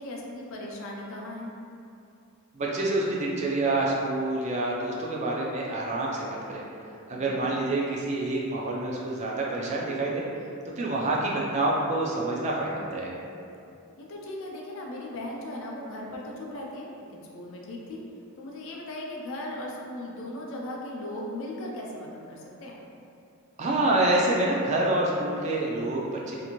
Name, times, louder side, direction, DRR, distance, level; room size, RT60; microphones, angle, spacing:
voice 1, 0.0-1.5 7.1-7.5 14.0-18.0 18.4-22.8, left 1 dB, 60° left, -1 dB, 0.4 m, -38 dB
voice 2, 2.5-6.6 7.1-10.2 10.8-13.2 23.6-26.4, right 2 dB, 30° right, -3 dB, 0.3 m, -27 dB
2.6 x 2.5 x 2.9 m, 2.6 s
head